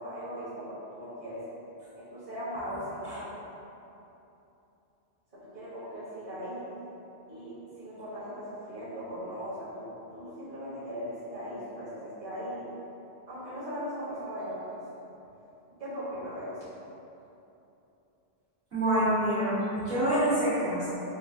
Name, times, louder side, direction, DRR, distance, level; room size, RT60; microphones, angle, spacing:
voice 1, 0.0-1.4 2.0-3.4 5.3-6.7 7.3-12.7 13.3-14.8 15.8-16.7, equal, 45° right, -13 dB, 1.3 m, -39 dB
voice 2, 18.7-20.9, right 1 dB, 65° right, -13 dB, 1.7 m, -26 dB
5.2 x 2.4 x 2.7 m, 3.0 s
omnidirectional pair, 1.1 m